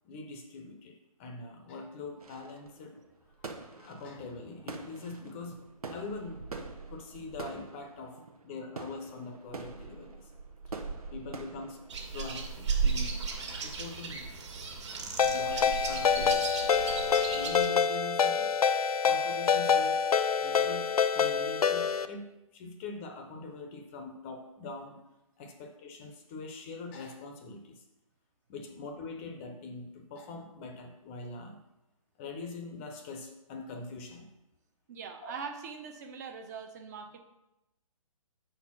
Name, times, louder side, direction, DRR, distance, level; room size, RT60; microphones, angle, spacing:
voice 1, 0.0-2.9 3.4-5.6 5.9-6.6 6.9-10.3 11.1-11.8 12.1-13.2 13.6-14.3 15.0-16.5 17.3-18.5 19.0-20.0 20.4-25.0 25.4-27.8 28.5-31.6 32.2-34.3 35.2-35.3, left 3 dB, 20° left, 4 dB, 0.7 m, -43 dB
sound 1, 2.2-12.3, right 3 dB, 85° right, 1.1 m, -45 dB
sound 2, 11.9-17.7, right 5 dB, 50° right, 1.7 m, -34 dB
Ringtone, 15.2-22.1, left 6 dB, 85° left, 0.5 m, -26 dB
voice 2, 34.9-37.2, right 5 dB, 30° right, 5 dB, 0.8 m, -42 dB
6.6 x 4.4 x 5.9 m, 0.94 s
hypercardioid pair, 155°, 18 cm